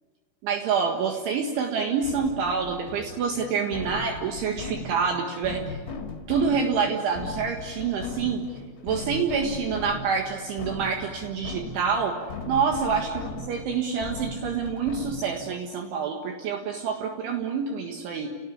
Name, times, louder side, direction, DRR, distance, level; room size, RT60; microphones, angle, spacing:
voice 1, 0.4-5.8 6.3-8.4 8.8-12.2 12.5-18.3, right 6 dB, 70° right, 2 dB, 3.9 m, -27 dB
sound 1, 2.0-15.5, left 3 dB, 35° left, 2.2 m, -38 dB
30.0 x 19.5 x 8.6 m, 1.5 s
omnidirectional pair, 6.0 m